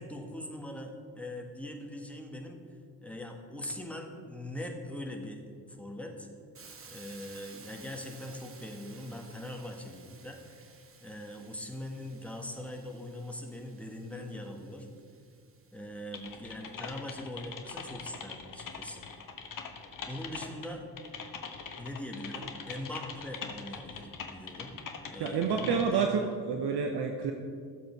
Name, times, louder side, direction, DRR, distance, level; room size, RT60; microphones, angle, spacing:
voice 1, 0.0-2.6 3.0-6.3 6.9-10.7 11.0-14.9 15.7-19.0 20.1-20.9 21.8-24.8 25.1-26.1, left 1 dB, 5° left, 1 dB, 1.9 m, -41 dB
Hiss, 6.6-16.4, right 5 dB, 25° right, 1.2 m, -55 dB
Typing, 16.1-26.0, left 5 dB, 40° left, 1.3 m, -43 dB
voice 2, 25.2-27.3, right 5 dB, 55° right, 4 dB, 1.0 m, -29 dB
13.5 x 7.7 x 4.8 m, 2.2 s
hypercardioid pair, 45°, 49 cm